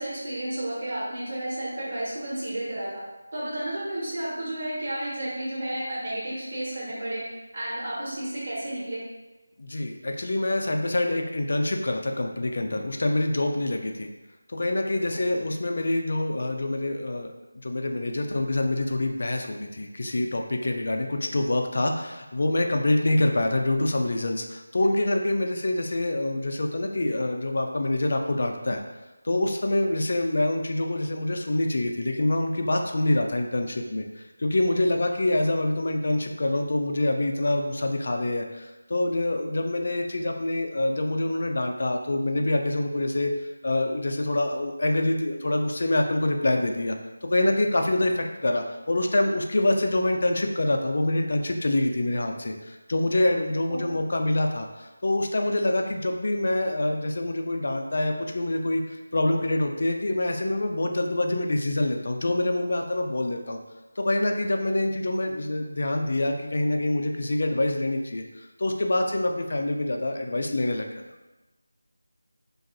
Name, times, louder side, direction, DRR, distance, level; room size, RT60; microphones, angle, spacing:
voice 1, 0.0-3.0 3.3-7.3 7.5-9.0 15.1-15.4 53.7-53.8, right 1 dB, 40° right, -8 dB, 1.1 m, -32 dB
voice 2, 9.6-14.1 14.5-28.8 29.2-47.0 47.3-63.6 64.0-71.0, left 1 dB, 55° left, 3 dB, 0.3 m, -26 dB
2.6 x 2.3 x 2.5 m, 1.1 s
figure-of-eight pair, 165°, 0 cm